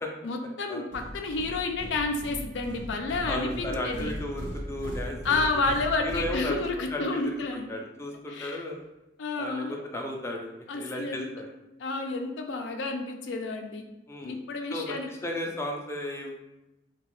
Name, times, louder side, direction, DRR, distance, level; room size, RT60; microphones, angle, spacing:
voice 1, 0.2-4.1 5.2-7.7 8.3-8.6 9.2-9.8 10.7-11.3 11.8-13.8 14.2-15.1, left 3 dB, 85° left, 4 dB, 0.4 m, -30 dB
sound 1, 0.9-6.9, equal, 70° right, 0.6 m, -38 dB
voice 2, 3.3-4.4 4.7-5.4 6.0-8.8 9.4-11.5 14.1-14.4 14.7-16.4, left 1 dB, 15° left, 0 dB, 0.4 m, -34 dB
2.8 x 2.2 x 3.0 m, 0.95 s
head